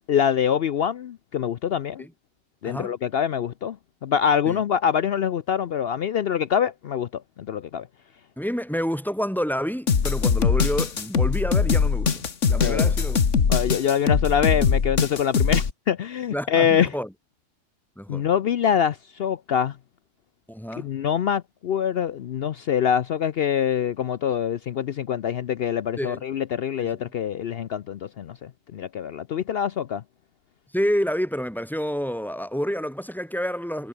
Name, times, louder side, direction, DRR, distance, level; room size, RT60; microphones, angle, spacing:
voice 1, 0.1-2.1 2.6-7.2 7.5-7.9 12.6-12.9 13.5-16.9 18.1-19.8 20.8-30.0, left 8 dB, 60° left, 0.8 m, -24 dB
voice 2, 2.6-2.9 4.5-4.6 8.4-13.2 16.3-17.1 18.0-18.3 20.5-20.9 26.0-26.2 26.8-26.9 30.7-33.9, equal, ahead, 6.0 m, -28 dB
sound 1, 9.9-15.7, left 6 dB, 75° left, 1.9 m, -21 dB
omnidirectional pair, 1.3 m